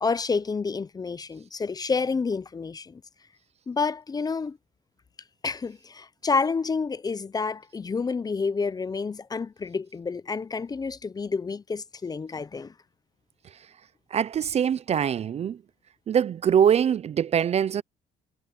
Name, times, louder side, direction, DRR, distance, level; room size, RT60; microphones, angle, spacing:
voice 1, 0.0-3.0 3.7-4.6 5.4-12.7, left 4 dB, 20° left, 0.7 m, -29 dB
voice 2, 14.1-15.6 16.1-17.8, right 8 dB, 40° right, 0.5 m, -23 dB
cardioid pair, 110°, 17 cm